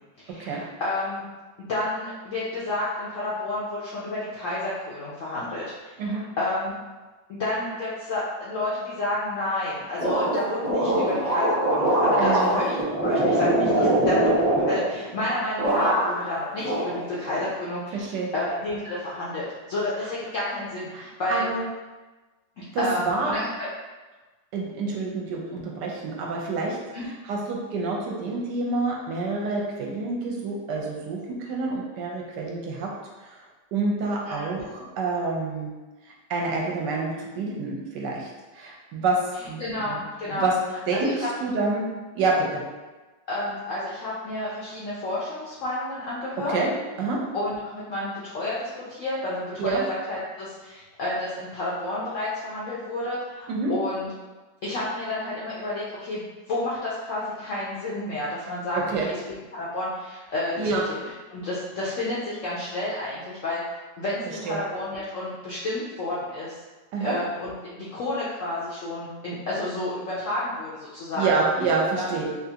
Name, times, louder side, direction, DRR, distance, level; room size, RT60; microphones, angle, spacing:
voice 1, 0.2-1.2 1.7-6.7 7.3-12.8 13.0-18.1 18.3-21.5 22.8-23.7 26.9-27.1 34.3-34.6 39.6-40.5 40.9-41.1 43.3-46.6 47.1-54.1 54.6-56.2 56.5-58.8 59.0-59.1 59.5-60.7 61.3-63.6 64.0-66.6 67.0-71.3 72.0-72.2, left 1 dB, 70° left, -7 dB, 0.7 m, -30 dB
sound 1, 10.0-15.3 15.6-16.3 16.6-17.5, right 1 dB, 15° right, 0.5 m, -23 dB
voice 2, 12.2-12.5 13.7-14.0 17.9-18.3 20.9-21.0 21.3-21.6 22.7-23.3 24.5-26.8 27.3-32.9 33.7-35.7 36.3-38.3 38.5-39.2 39.5-40.0 40.3-40.5 40.9-41.1 41.4-41.9 42.1-42.6 46.5-46.7 47.0-47.2 49.6-49.8 53.5-53.7 58.9-59.1 60.6-60.8 64.4-64.6 66.9-67.2 71.1-72.3, right 3 dB, 75° right, -2 dB, 1.2 m, -27 dB
3.5 x 2.4 x 2.7 m, 1.2 s
omnidirectional pair, 2.0 m